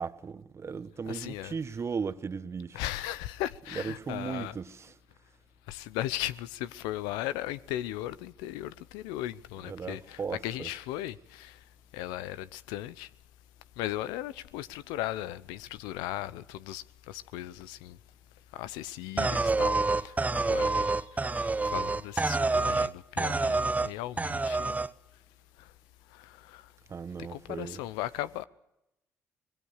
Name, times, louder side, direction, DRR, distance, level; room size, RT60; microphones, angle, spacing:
voice 1, 0.0-2.8 3.7-4.9 9.6-10.7 26.9-27.8, right 5 dB, 40° right, 1.4 m, -37 dB
voice 2, 1.1-1.6 2.7-4.6 5.7-11.6 11.9-13.1 13.8-18.0 18.5-24.8 25.6-25.7 26.1-26.7 27.2-28.4, left 14 dB, 85° left, 0.8 m, -37 dB
sound 1, 19.2-22.9 23.2-23.9 24.2-24.9, right 3 dB, 20° right, 0.9 m, -27 dB
26.0 x 20.5 x 6.5 m
supercardioid pair, 65°, 7 cm